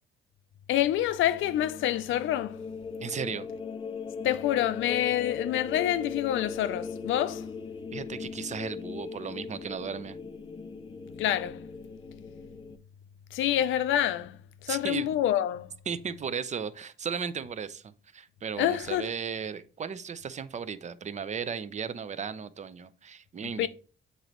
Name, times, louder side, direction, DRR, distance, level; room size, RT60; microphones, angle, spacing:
voice 1, 0.7-2.6 4.2-7.5 11.2-11.6 13.3-15.7 18.6-19.1 23.6-23.7, left 12 dB, 80° left, 0.5 m, -27 dB
sound 1, 0.9-12.8, left 5 dB, 25° left, 0.5 m, -39 dB
voice 2, 3.0-3.5 7.9-10.2 14.7-15.1 15.9-23.7, right 6 dB, 35° right, 0.5 m, -35 dB
8.1 x 3.9 x 3.0 m
cardioid pair, 90°, 20 cm